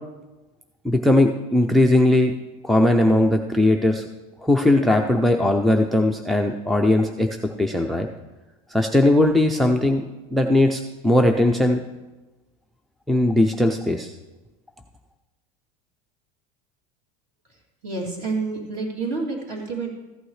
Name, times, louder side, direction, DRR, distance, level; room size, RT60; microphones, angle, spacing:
voice 1, 0.8-2.3 2.6-4.0 4.4-7.3 7.6-8.1 8.7-10.0 10.3-11.8 13.1-14.1, left 1 dB, ahead, 4 dB, 0.4 m, -19 dB
voice 2, 17.8-19.9, right 3 dB, 40° right, -1 dB, 2.9 m, -28 dB
14.5 x 8.9 x 3.2 m, 1.1 s
supercardioid pair, 150°, 18 cm